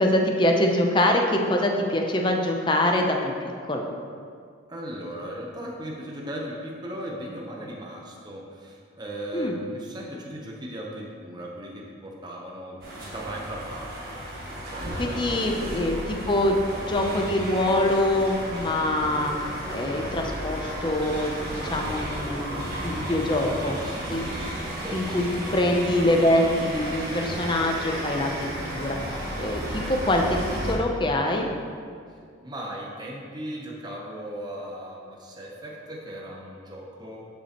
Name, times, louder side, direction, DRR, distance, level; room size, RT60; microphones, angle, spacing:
voice 1, 0.0-3.3 3.7-3.9 9.3-9.5 15.0-16.6 16.9-21.4 21.6-23.8 24.1-24.2 24.9-25.3 25.5-29.0 29.4-31.5, left 1 dB, 25° left, 2 dB, 0.6 m, -24 dB
voice 2, 4.7-16.0 23.5-24.4 24.8-25.7 32.1-37.3, right 1 dB, 20° right, -2 dB, 0.8 m, -38 dB
sound 1, 12.8-30.8, equal, 50° right, 1.8 m, -33 dB
10.5 x 5.7 x 3.0 m, 2.2 s
head